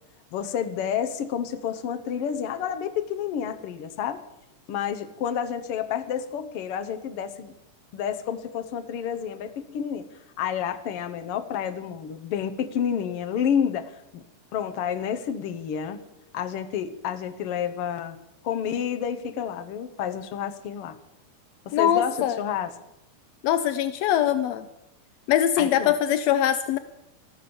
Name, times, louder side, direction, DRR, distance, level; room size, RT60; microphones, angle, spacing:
voice 1, 0.3-4.2 4.7-7.5 7.9-10.0 10.4-14.2 14.5-16.0 16.3-18.2 18.4-21.0 21.6-22.7 25.6-26.0, left 8 dB, 65° left, 8 dB, 1.6 m, -29 dB
voice 2, 21.7-22.4 23.4-24.7 25.3-26.8, left 10 dB, 80° left, 11 dB, 1.5 m, -22 dB
13.5 x 13.0 x 6.9 m, 0.88 s
omnidirectional pair, 3.7 m